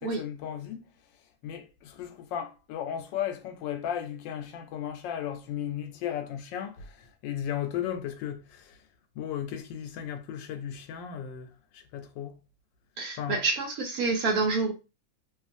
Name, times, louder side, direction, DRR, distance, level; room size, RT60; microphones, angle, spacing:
voice 1, 0.0-0.9 1.4-8.8 9.2-12.4 13.2-13.4, left 9 dB, 90° left, 1.3 m, -35 dB
voice 2, 13.0-14.7, right 3 dB, 65° right, 1.0 m, -27 dB
2.9 x 2.4 x 2.5 m
omnidirectional pair, 1.9 m